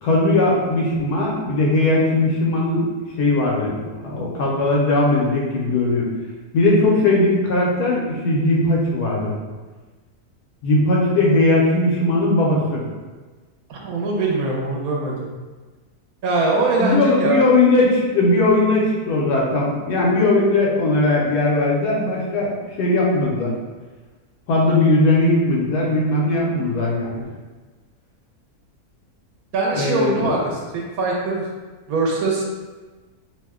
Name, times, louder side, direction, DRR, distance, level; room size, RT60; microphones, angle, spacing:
voice 1, 0.0-2.9 3.2-6.0 6.5-9.3 10.6-12.8 16.8-23.5 24.5-27.2 29.7-30.4, left 2 dB, 85° left, -3 dB, 1.3 m, -19 dB
voice 2, 13.7-15.3 16.2-17.4 29.5-31.5 31.9-32.4, right 3 dB, 70° right, -2 dB, 1.0 m, -22 dB
2.9 x 2.1 x 3.5 m, 1.3 s
omnidirectional pair, 1.7 m